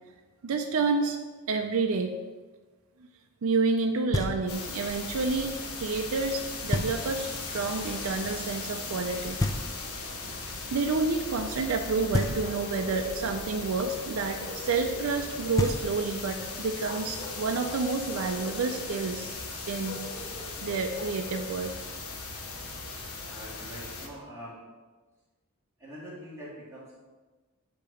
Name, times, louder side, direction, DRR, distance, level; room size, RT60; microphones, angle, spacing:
voice 1, 0.4-1.2 1.5-2.1 3.4-9.4 10.7-19.4 19.7-20.0 20.6-21.7, right 4 dB, 70° right, 3 dB, 0.4 m, -29 dB
Knock, 4.1-4.8 6.7-7.4 9.4-10.2 12.1-12.9 15.2-15.3 15.6-16.4, left 2 dB, 15° left, 0.4 m, -31 dB
sound 1, 4.5-24.1, left 3 dB, 85° left, 0.9 m, -38 dB
Bark, 12.4-14.0 14.4-16.1 16.8-17.8 18.1-19.1 19.8-21.5, equal, 55° left, 0.9 m, -43 dB
voice 2, 23.2-24.6 25.8-27.0, equal, 15° right, -7 dB, 2.0 m, -44 dB
8.1 x 2.9 x 5.0 m, 1.3 s
head